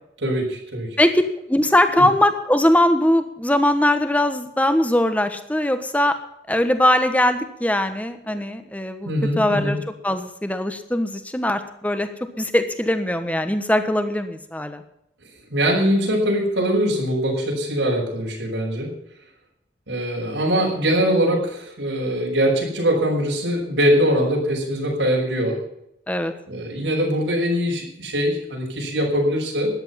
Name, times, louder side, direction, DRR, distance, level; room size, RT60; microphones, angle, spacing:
voice 1, 0.2-0.9 9.0-9.7 15.5-18.9 19.9-25.6 26.5-29.7, equal, 85° right, -2 dB, 6.1 m, -22 dB
voice 2, 1.5-6.2 6.5-9.1 9.4-9.8 10.0-12.1 12.4-14.8 26.1-26.3, left 1 dB, 10° left, 8 dB, 1.3 m, -20 dB
14.0 x 11.0 x 5.8 m, 0.79 s
head